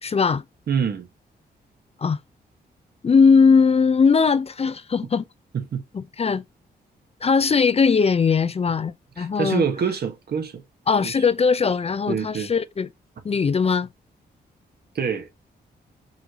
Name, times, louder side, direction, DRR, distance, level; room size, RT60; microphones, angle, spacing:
voice 1, 0.0-0.4 2.0-2.2 3.0-5.2 5.9-6.4 7.2-9.6 10.9-12.9 13.2-13.9, left 5 dB, 35° left, 0.5 m, -19 dB
voice 2, 0.7-1.1 5.5-5.8 9.2-10.6 11.0-11.2 12.1-12.5 14.9-15.3, right 6 dB, 65° right, 1.3 m, -26 dB
5.4 x 3.2 x 2.7 m
cardioid pair, 65°, 18 cm